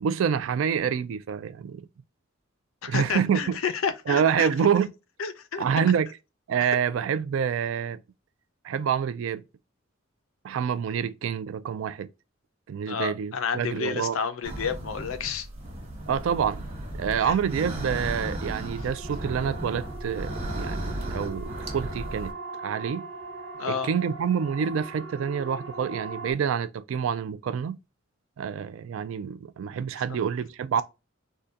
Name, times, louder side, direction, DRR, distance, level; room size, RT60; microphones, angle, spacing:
voice 1, 0.0-1.8 2.9-3.6 4.1-4.9 5.6-6.1 6.5-8.0 8.6-9.4 10.4-12.1 12.7-14.2 16.1-16.7 17.0-22.3 22.6-23.1 23.7-27.8 28.4-30.8, right 7 dB, 65° right, 0.3 m, -27 dB
voice 2, 2.8-4.5 5.2-5.6 12.9-15.5 17.2-17.3 23.5-23.9 29.9-30.0, left 6 dB, 75° left, 0.5 m, -30 dB
sound 1, 14.4-22.3, right 1 dB, 30° right, 1.1 m, -35 dB
Siren, 18.7-26.3, right 3 dB, 85° right, 1.2 m, -40 dB
3.6 x 2.2 x 2.7 m
head